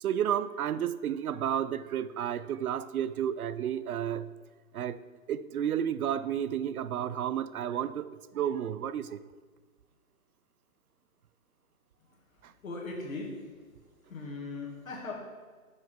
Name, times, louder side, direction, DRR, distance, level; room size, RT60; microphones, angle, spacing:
voice 1, 0.0-4.3 4.7-5.0 5.3-9.2, right 9 dB, 85° right, 0.5 m, -31 dB
voice 2, 12.6-13.3 14.1-15.1, left 3 dB, 70° left, 1.9 m, -38 dB
7.3 x 6.2 x 3.6 m
hypercardioid pair, 165°, 42 cm